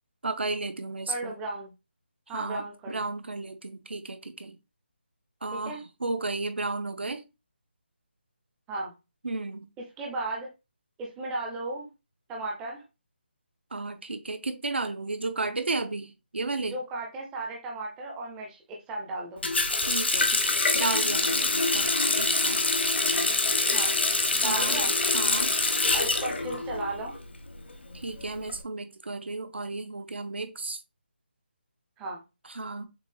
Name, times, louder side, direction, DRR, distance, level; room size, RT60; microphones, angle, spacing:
voice 1, 0.2-1.3 2.3-4.6 5.4-7.2 9.2-9.7 13.7-16.8 19.9-22.6 24.4-24.8 25.1-25.5 27.9-30.8 32.4-32.9, right 3 dB, 90° right, 0.9 m, -33 dB
voice 2, 1.1-1.7 2.3-3.1 5.5-5.8 8.7-8.9 10.0-10.5 11.0-11.9 12.3-12.8 16.7-19.5 23.7-24.0 24.3-25.0 25.9-27.2 32.0-32.2, right 2 dB, 5° right, 0.4 m, -35 dB
Water tap faucet, 19.4-27.2 27.5-28.5, left 3 dB, 85° left, 1.1 m, -25 dB
6.6 x 2.4 x 3.2 m
hypercardioid pair, 175°, 6 cm